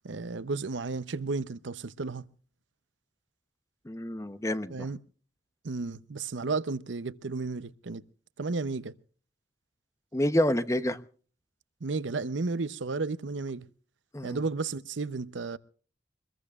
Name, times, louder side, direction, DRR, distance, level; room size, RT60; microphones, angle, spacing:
voice 1, 0.0-2.3 4.7-5.0 5.6-8.0 8.4-8.9 11.8-13.7 14.2-15.6, right 3 dB, 85° right, 0.7 m, -33 dB
voice 2, 3.8-4.9 10.1-11.0 14.1-14.4, left 1 dB, 15° left, 0.8 m, -28 dB
24.0 x 21.5 x 2.4 m
head